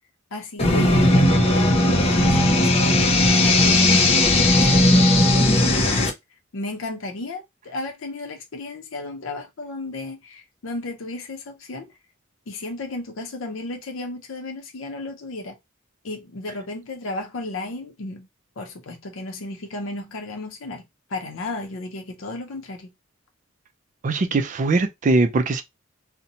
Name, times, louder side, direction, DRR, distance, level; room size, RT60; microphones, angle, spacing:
voice 1, 0.3-6.0 6.5-11.9 12.5-15.6 16.0-18.3 18.6-20.8 21.1-22.9, left 2 dB, 75° left, 0.6 m, -34 dB
sound 1, 0.6-6.1, left 1 dB, 30° left, 0.5 m, -17 dB
voice 2, 24.0-25.6, right 2 dB, 40° right, 0.4 m, -21 dB
2.6 x 2.1 x 2.8 m
head